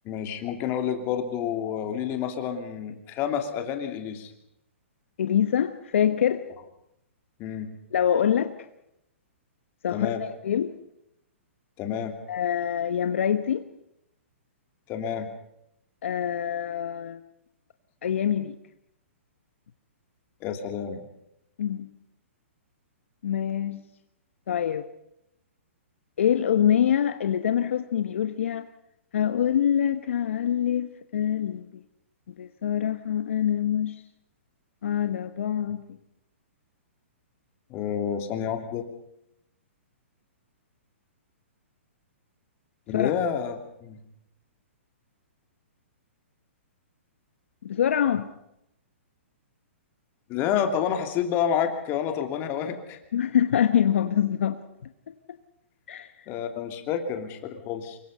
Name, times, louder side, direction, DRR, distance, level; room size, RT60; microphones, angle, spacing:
voice 1, 0.0-4.3 7.4-7.7 9.9-10.2 11.8-12.2 14.9-15.3 20.4-21.0 37.7-38.9 42.9-44.0 50.3-53.0 56.3-58.0, left 8 dB, 30° left, 6 dB, 2.9 m, -29 dB
voice 2, 5.2-6.4 7.9-8.5 9.8-10.1 10.4-10.7 12.3-13.6 16.0-17.2 18.0-18.5 21.6-21.9 23.2-23.8 24.5-24.8 26.2-28.6 29.1-31.6 32.4-34.0 34.8-36.0 42.9-43.1 47.6-48.3 53.1-54.6 55.9-56.1, left 9 dB, 70° left, 9 dB, 1.2 m, -25 dB
25.0 x 22.5 x 5.6 m, 0.82 s
hypercardioid pair, 135°, 7 cm